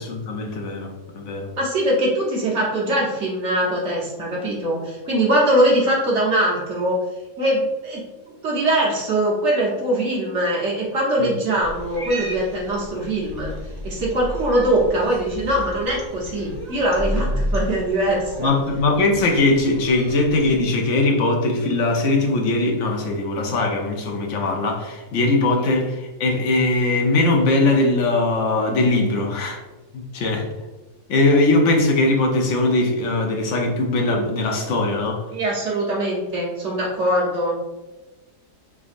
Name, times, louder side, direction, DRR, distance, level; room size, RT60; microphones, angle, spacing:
voice 1, 0.0-1.5 11.2-11.3 17.2-17.4 18.4-29.6 29.9-30.5 31.1-35.2, left 2 dB, 60° left, 1 dB, 0.8 m, -20 dB
voice 2, 1.6-7.0 7.4-8.0 8.4-13.5 13.8-18.5 35.3-37.5, right 1 dB, 50° right, -4 dB, 1.1 m, -22 dB
Cat, 11.6-20.6, equal, 25° right, 0.5 m, -32 dB
3.8 x 3.4 x 2.5 m, 1.1 s
omnidirectional pair, 1.7 m